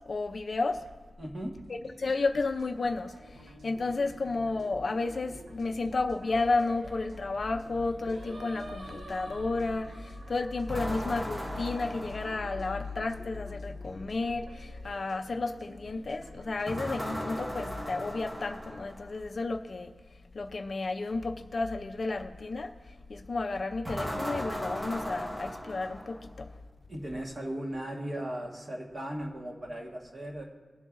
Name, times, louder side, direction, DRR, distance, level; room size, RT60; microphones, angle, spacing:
voice 1, 0.1-0.8 1.7-3.1 3.4-19.9 20.3-22.7 23.1-26.5, left 3 dB, 40° left, 6 dB, 0.5 m, -32 dB
voice 2, 1.2-1.5 26.9-30.4, right 1 dB, 35° right, -1 dB, 1.5 m, -37 dB
sound 1, 1.7-18.2, right 1 dB, 65° right, 1.0 m, -52 dB
Singing, 6.3-11.6, right 1 dB, 85° right, 2.0 m, -49 dB
sound 2, 10.7-13.0 16.7-19.2 23.8-26.5, equal, 10° right, 0.8 m, -38 dB
20.0 x 7.7 x 2.6 m, 1.4 s
wide cardioid pair, 180°, 0 cm